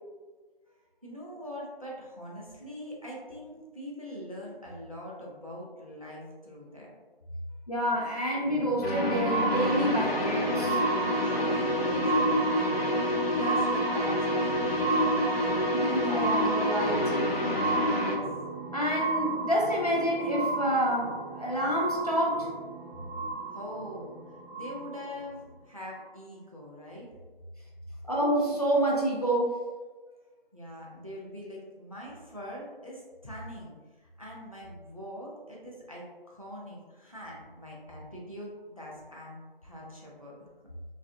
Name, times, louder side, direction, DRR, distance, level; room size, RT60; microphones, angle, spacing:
voice 1, 0.7-6.9 7.5-7.6 11.2-15.4 17.7-18.2 23.5-24.2 24.5-25.4 25.6-27.1 30.5-38.5 38.8-40.4 40.6-40.7, equal, 35° right, -4 dB, 0.5 m, -43 dB
voice 2, 7.7-10.8 15.7-17.1 18.7-22.5 28.1-29.6, equal, 40° left, -4 dB, 0.5 m, -28 dB
sound 1, 8.4-25.2 26.0-26.1, right 4 dB, 85° right, 0.6 m, -34 dB
sound 2, 8.8-18.2, left 1 dB, 85° left, 0.7 m, -28 dB
2.6 x 2.4 x 2.3 m, 1.3 s
figure-of-eight pair, 175°, 30 cm